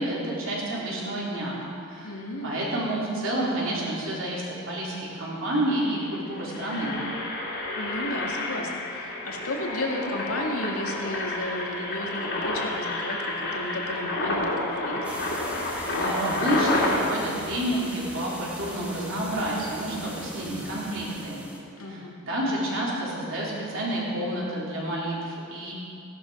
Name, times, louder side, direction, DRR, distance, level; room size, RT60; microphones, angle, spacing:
voice 1, 0.0-2.1 2.4-6.9 16.0-21.4 21.9-25.7, right 1 dB, 60° right, -6 dB, 3.8 m, -29 dB
voice 2, 2.0-2.6 7.8-15.3 21.8-22.2, left 1 dB, 75° left, 0 dB, 1.9 m, -33 dB
Engine, 5.2-5.3 5.6-5.8 6.3-17.0, left 2 dB, 50° left, 2.8 m, -30 dB
sound 1, 15.0-21.6, equal, 5° right, 1.5 m, -41 dB
16.0 x 11.5 x 5.3 m, 2.5 s
head